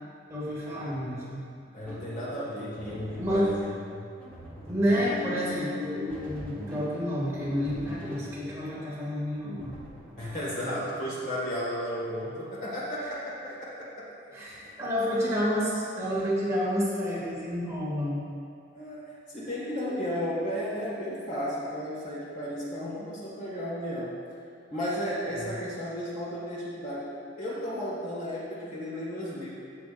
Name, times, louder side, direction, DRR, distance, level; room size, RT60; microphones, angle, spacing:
voice 1, 0.3-1.4 3.2-3.5 4.7-9.8 13.0-13.1 14.3-18.2 25.3-25.5, equal, 15° right, -8 dB, 2.2 m, -29 dB
voice 2, 1.7-4.1 10.2-14.1 14.5-14.7 15.1-15.3 18.7-24.2 24.7-29.5, equal, 40° left, -6 dB, 1.8 m, -34 dB
sound 1, 1.8-11.3, left 2 dB, 5° left, 1.6 m, -42 dB
15.5 x 6.1 x 2.6 m, 2.4 s
head